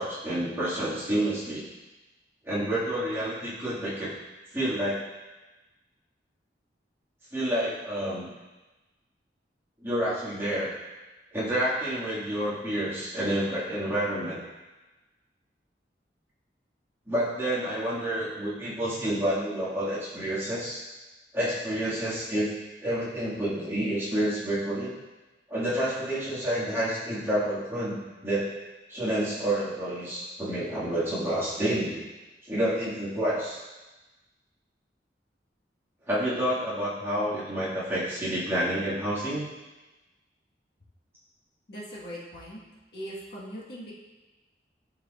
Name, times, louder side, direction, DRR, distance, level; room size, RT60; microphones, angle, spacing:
voice 1, 0.0-1.7 2.4-4.1 4.5-5.0 7.3-8.3 9.8-10.7 11.3-14.4 17.1-20.8 21.3-22.5 22.8-24.9 25.5-28.5 28.9-32.0 32.4-33.6 36.1-39.4, right 1 dB, 15° right, -10 dB, 2.0 m, -29 dB
voice 2, 41.7-42.6 42.9-43.9, equal, 60° left, -6 dB, 1.6 m, -40 dB
12.0 x 4.7 x 2.5 m, 1.1 s
head